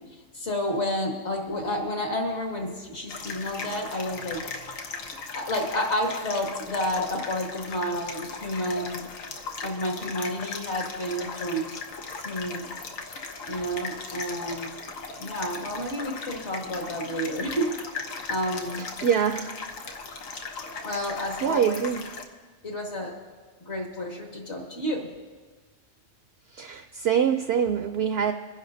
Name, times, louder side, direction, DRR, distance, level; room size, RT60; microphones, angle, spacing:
voice 1, 0.1-4.4 5.3-9.1 9.6-11.8 12.2-12.7 13.5-14.7 15.2-17.7 18.3-18.8 20.8-21.8 22.6-23.1 23.7-25.1, equal, 60° left, 0 dB, 2.1 m, -30 dB
sound 1, 3.1-22.2, left 4 dB, 90° left, 1.4 m, -38 dB
voice 2, 19.0-19.5 21.4-22.0 26.5-28.3, right 8 dB, 65° right, 8 dB, 0.7 m, -24 dB
25.5 x 10.5 x 2.6 m, 1.4 s
omnidirectional pair, 1.3 m